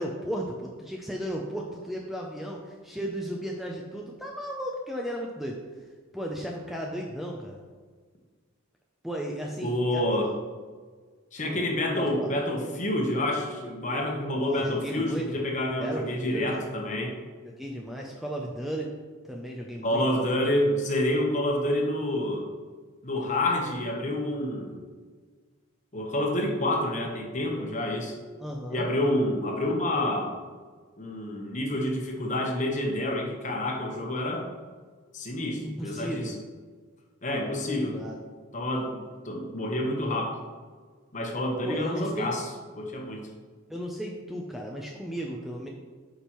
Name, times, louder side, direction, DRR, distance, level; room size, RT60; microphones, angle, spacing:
voice 1, 0.0-5.6 6.1-7.6 9.0-10.3 11.4-11.6 12.2-12.3 14.3-15.3 15.8-16.4 17.4-18.9 19.2-20.2 28.4-28.8 35.6-36.3 37.6-38.2 41.6-42.3 43.7-45.7, equal, ahead, -1 dB, 0.4 m, -35 dB
voice 2, 9.6-10.3 11.3-17.2 19.8-22.4 23.0-24.8 25.9-28.1 28.7-30.3 31.0-34.5 35.1-36.3 37.2-37.9 38.5-40.4 41.1-42.4 42.8-43.3, left 1 dB, 35° left, 1 dB, 1.0 m, -28 dB
8.5 x 5.3 x 3.0 m, 1.5 s
head